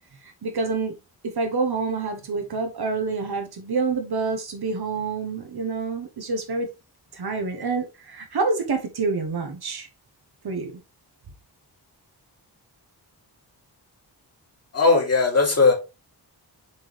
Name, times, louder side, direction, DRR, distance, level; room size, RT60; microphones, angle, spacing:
voice 1, 0.4-0.9 1.2-6.7 7.1-9.9 10.4-10.8, right 4 dB, 65° right, 1.3 m, -27 dB
voice 2, 14.7-15.7, left 4 dB, 35° left, 2.7 m, -18 dB
6.9 x 4.5 x 3.3 m
wide cardioid pair, 160°, 41 cm